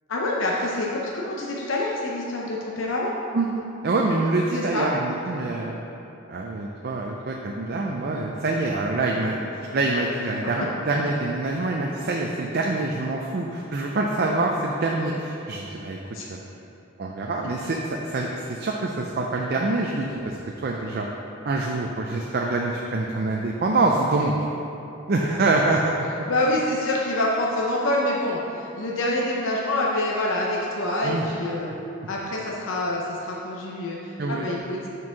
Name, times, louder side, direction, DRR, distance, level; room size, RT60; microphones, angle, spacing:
voice 1, 0.1-3.1 4.5-4.9 16.1-16.3 26.3-31.8 32.1-34.9, left 1 dB, 65° left, -3 dB, 0.7 m, -26 dB
voice 2, 3.8-5.8 6.3-16.0 16.3-16.4 17.0-20.4 20.6-21.1 21.4-24.3 25.1-25.9 31.0-31.2 34.2-34.5, right 2 dB, 45° right, 0 dB, 0.4 m, -25 dB
6.0 x 4.6 x 5.8 m, 2.9 s
head